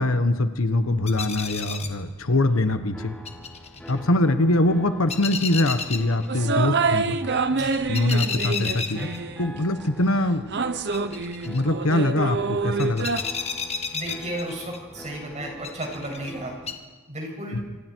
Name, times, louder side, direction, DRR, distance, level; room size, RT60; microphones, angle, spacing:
voice 1, 0.0-3.1 3.9-7.2 7.9-9.1 9.4-10.6 11.4-13.1 17.5-17.6, left 1 dB, 70° left, 9 dB, 1.4 m, -23 dB
sound 1, 0.8-16.7, left 5 dB, 30° left, 1.7 m, -36 dB
sound 2, 2.9-16.7, left 1 dB, 5° left, 2.9 m, -45 dB
sound 3, 6.3-9.7 10.5-13.2, right 4 dB, 55° right, 1.0 m, -27 dB
voice 2, 13.9-16.7 17.1-17.6, right 1 dB, 35° right, 0 dB, 6.9 m, -33 dB
26.5 x 26.0 x 4.7 m, 1.3 s
head